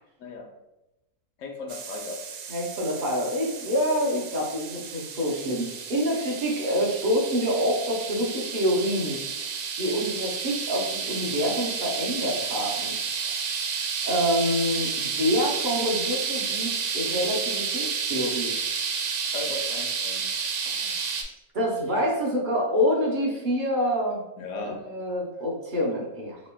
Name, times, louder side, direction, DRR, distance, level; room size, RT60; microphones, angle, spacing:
voice 1, 0.2-0.5 1.4-2.2 19.3-20.3 24.4-24.8, left 3 dB, 65° left, 3 dB, 0.9 m, -36 dB
sound 1, 1.7-21.2, right 6 dB, 90° right, 1.1 m, -31 dB
voice 2, 2.5-9.2 9.8-13.0 13.3-18.5 20.6-21.0 21.5-24.2 24.6-26.4, equal, 40° right, -3 dB, 0.8 m, -27 dB
4.1 x 3.0 x 2.3 m, 0.96 s
omnidirectional pair, 1.6 m